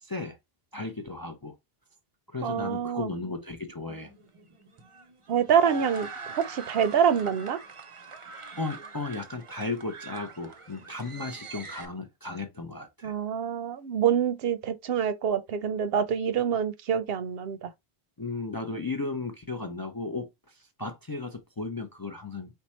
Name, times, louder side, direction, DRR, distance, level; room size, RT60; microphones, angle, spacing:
voice 1, 0.0-0.4 0.7-1.5 2.3-4.1 8.6-13.1 18.2-22.5, left 3 dB, 30° left, 0.4 m, -35 dB
voice 2, 2.4-3.1 5.3-7.6 13.0-17.7, right 8 dB, 70° right, 0.8 m, -26 dB
sound 1, 3.9-11.8, right 4 dB, 35° right, 0.6 m, -43 dB
4.4 x 2.3 x 4.2 m
omnidirectional pair, 1.1 m